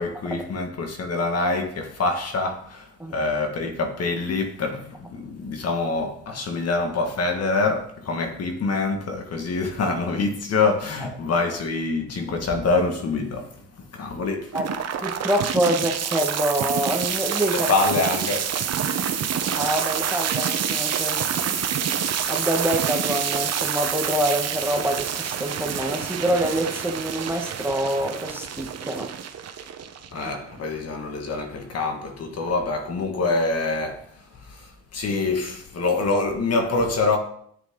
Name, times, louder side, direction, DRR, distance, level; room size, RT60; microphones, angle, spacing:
voice 1, 0.0-14.6 17.5-18.5 30.1-37.2, left 3 dB, 55° left, 1.9 m, -25 dB
sound 1, 14.5-30.5, right 8 dB, 55° right, 1.1 m, -27 dB
voice 2, 15.0-17.7 19.5-21.6 21.9-22.0 22.3-29.1, right 1 dB, 5° right, 1.6 m, -26 dB
10.0 x 8.9 x 3.9 m
cardioid pair, 90°, 30 cm